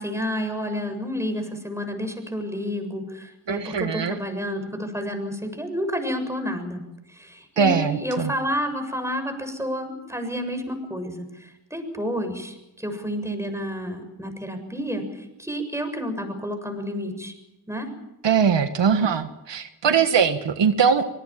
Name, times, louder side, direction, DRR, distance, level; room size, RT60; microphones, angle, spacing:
voice 1, 0.0-6.8 7.1-17.3 17.7-17.9, equal, 5° right, 7 dB, 7.2 m, -30 dB
voice 2, 3.5-4.2 7.6-8.3 18.2-21.0, right 6 dB, 75° right, 8 dB, 1.6 m, -21 dB
26.0 x 19.0 x 7.5 m, 0.94 s
cardioid pair, 60°, 44 cm